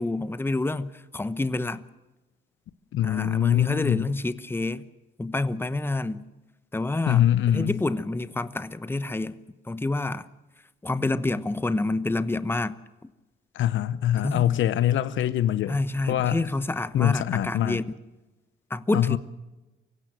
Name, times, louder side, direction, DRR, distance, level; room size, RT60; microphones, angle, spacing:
voice 1, 0.0-1.8 3.0-4.8 5.2-6.2 6.7-7.2 7.5-9.4 9.7-10.3 10.8-12.8 14.2-14.6 15.7-17.8 18.7-19.2, left 2 dB, 10° left, 0.9 m, -28 dB
voice 2, 2.9-4.1 7.1-7.8 13.5-15.8 16.1-16.4 16.9-17.8 18.9-19.2, left 11 dB, 75° left, 1.0 m, -23 dB
24.5 x 16.0 x 7.8 m
cardioid pair, 90°, 20 cm